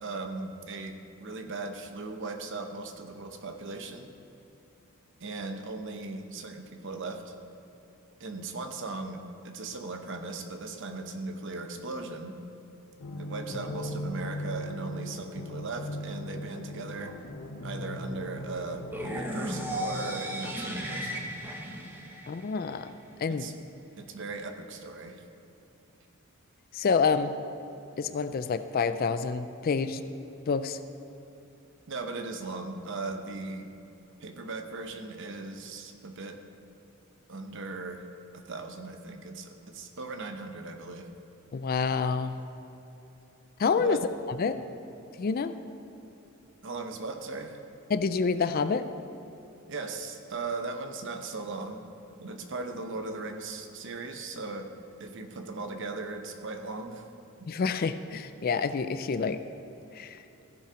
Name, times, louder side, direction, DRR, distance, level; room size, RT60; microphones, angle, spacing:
voice 1, 0.0-4.1 5.2-7.3 8.2-12.4 13.2-17.1 17.6-21.3 23.3-23.5 24.0-25.2 31.9-33.7 34.2-36.4 37.3-38.0 38.3-41.1 43.8-44.0 46.6-47.6 49.7-51.8 52.2-54.7 55.0-57.1 57.4-57.5, right 3 dB, 55° right, 6 dB, 0.8 m, -38 dB
sound 1, 13.0-21.2, left 1 dB, 65° left, 0.8 m, -39 dB
sound 2, 18.9-22.9, equal, 10° right, 0.8 m, -35 dB
voice 2, 22.3-22.9 23.2-23.5 26.7-27.4 28.0-30.0 30.5-30.8 41.5-42.4 43.6-44.0 44.4-44.5 45.2-45.5 47.9-48.8 57.5-59.4 59.9-60.2, left 5 dB, 40° left, 11 dB, 0.4 m, -27 dB
15.0 x 5.5 x 5.1 m, 2.9 s
head